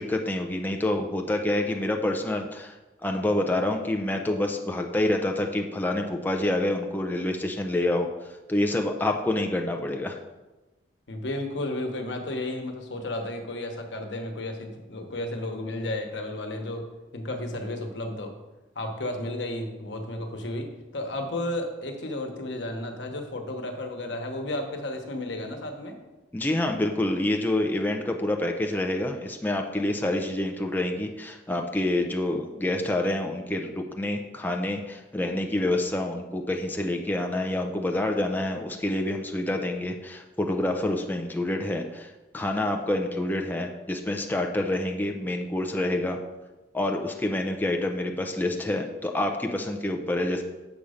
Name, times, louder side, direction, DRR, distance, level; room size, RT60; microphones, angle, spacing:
voice 1, 0.0-2.8 3.0-8.1 8.5-10.2 26.3-46.2 46.7-50.4, left 1 dB, 10° left, 3 dB, 0.5 m, -27 dB
voice 2, 11.1-16.9 17.1-18.3 18.7-26.0, left 1 dB, 90° left, 4 dB, 1.1 m, -33 dB
7.1 x 5.3 x 5.0 m, 1.1 s
head